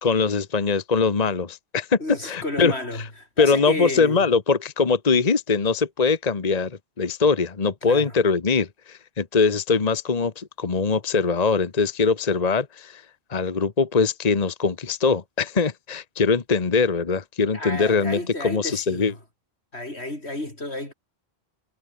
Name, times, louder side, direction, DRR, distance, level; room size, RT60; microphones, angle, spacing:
voice 1, 0.0-2.7 3.4-13.0 13.3-19.1, left 4 dB, 40° left, 1.2 m, -22 dB
voice 2, 2.0-4.2 7.8-8.1 17.5-19.2 19.7-20.9, left 1 dB, 85° left, 6.2 m, -32 dB
omnidirectional pair, 1.1 m